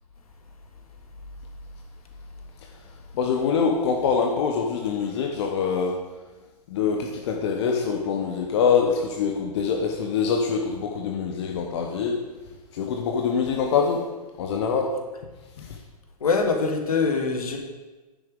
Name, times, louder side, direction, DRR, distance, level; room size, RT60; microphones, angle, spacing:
voice 1, 3.1-6.0 6.7-12.2 12.7-14.0 14.4-14.9 15.6-15.7, left 6 dB, 45° left, 1 dB, 0.9 m, -24 dB
voice 2, 16.2-17.6, left 4 dB, 65° left, 3 dB, 1.6 m, -23 dB
10.0 x 7.2 x 3.7 m, 1.2 s
figure-of-eight pair, 115°, 20 cm